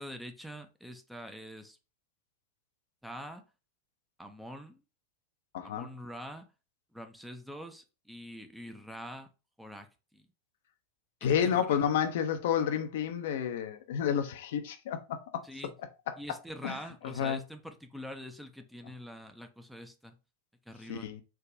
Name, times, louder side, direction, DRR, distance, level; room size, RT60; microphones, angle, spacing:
voice 1, 0.0-1.8 3.0-3.4 4.2-4.8 5.6-6.5 6.9-9.3 9.6-10.3 11.2-11.9 15.4-15.7 16.2-20.2 20.7-21.1, equal, ahead, 0.4 m, -45 dB
voice 2, 5.5-5.9 11.2-15.4 16.6-16.8 17.2-17.4 20.9-21.2, left 8 dB, 55° left, 0.4 m, -30 dB
3.3 x 2.1 x 2.6 m
figure-of-eight pair, 90°, 0 cm